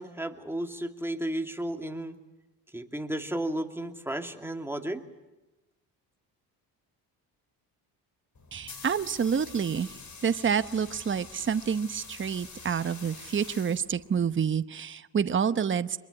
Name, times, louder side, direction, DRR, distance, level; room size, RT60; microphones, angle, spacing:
voice 1, 0.0-2.2 2.7-5.0, right 1 dB, 5° right, 5 dB, 2.5 m, -33 dB
sound 1, 8.3-14.3, left 4 dB, 45° left, 4.6 m, -47 dB
voice 2, 8.5-9.9 10.2-16.0, right 7 dB, 30° right, 12 dB, 0.9 m, -28 dB
24.0 x 22.0 x 10.0 m, 1.0 s
supercardioid pair, 70°, 41 cm